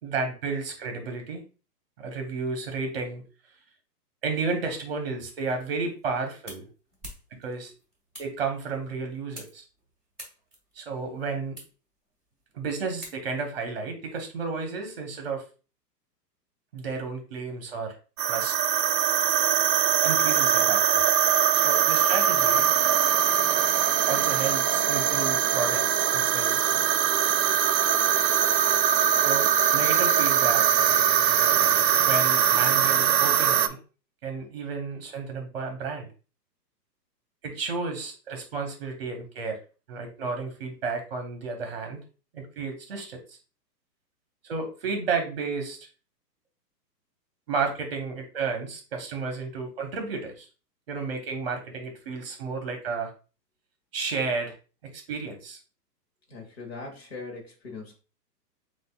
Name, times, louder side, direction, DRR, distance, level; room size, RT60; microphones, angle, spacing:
voice 1, 0.0-1.4 2.0-3.2 4.2-6.7 7.3-7.7 8.2-9.6 10.7-11.6 12.5-15.4 16.7-17.9 18.3-18.5 20.0-21.0 21.5-22.7 24.1-26.9 29.1-30.7 32.1-33.8 34.2-36.1 37.4-39.6 39.9-42.0 42.3-43.4 44.4-45.8 47.5-50.5 50.9-53.1 53.9-54.5 54.8-55.6, right 4 dB, 35° right, 4 dB, 1.1 m, -32 dB
sound 1, 5.8-13.6, right 1 dB, ahead, 0.6 m, -49 dB
sound 2, 18.2-33.7, right 9 dB, 80° right, 0.6 m, -22 dB
voice 2, 56.3-57.9, left 3 dB, 40° left, 1 dB, 1.3 m, -40 dB
7.3 x 2.6 x 2.3 m, 0.34 s
hypercardioid pair, 175°, 49 cm